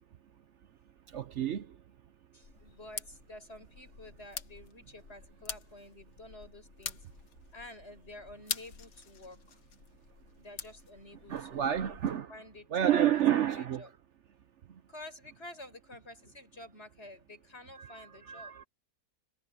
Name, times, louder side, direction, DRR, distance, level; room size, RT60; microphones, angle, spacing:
voice 1, 1.1-1.7 11.3-12.3 12.7-13.8 17.8-18.6, right 10 dB, 60° right, 0.8 m, -29 dB
voice 2, 2.3-7.0 7.5-9.6 10.4-11.9 12.3-13.2 13.5-13.9 14.9-18.6, left 1 dB, 40° left, 7.3 m, -50 dB
sound 1, 2.4-12.1, left 6 dB, 60° left, 1.8 m, -46 dB
omnidirectional pair, 1.7 m